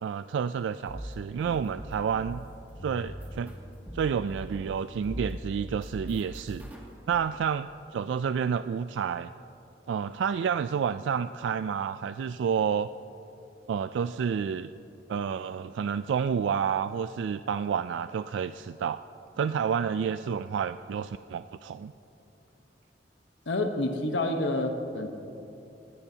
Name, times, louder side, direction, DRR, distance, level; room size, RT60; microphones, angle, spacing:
voice 1, 0.0-2.4 2.8-3.5 3.9-6.6 7.1-9.3 9.9-12.9 13.7-14.7 15.1-19.0 19.4-21.9, right 7 dB, 85° right, 12 dB, 0.3 m, -29 dB
sound 1, 0.9-2.6 3.1-4.8 5.0-7.2, equal, 10° right, 2.0 m, -41 dB
sound 2, 2.8-4.6, left 1 dB, 35° left, 1.8 m, -45 dB
voice 2, 23.5-25.1, left 2 dB, 85° left, 4 dB, 1.0 m, -28 dB
20.0 x 17.0 x 2.8 m, 2.9 s
head